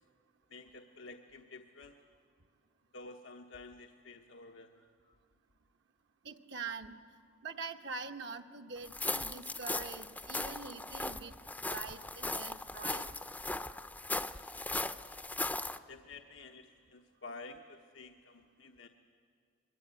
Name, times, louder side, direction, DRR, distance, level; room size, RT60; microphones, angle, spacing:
voice 1, 0.5-2.0 2.9-4.8 6.9-7.0 15.9-18.9, left 3 dB, 90° left, 3 dB, 1.2 m, -51 dB
voice 2, 6.2-11.4 11.7-13.1, right 4 dB, 65° right, 5 dB, 1.1 m, -44 dB
sound 1, 8.8-15.8, left 2 dB, 10° left, 0.6 m, -38 dB
24.5 x 21.5 x 9.0 m, 2.2 s
head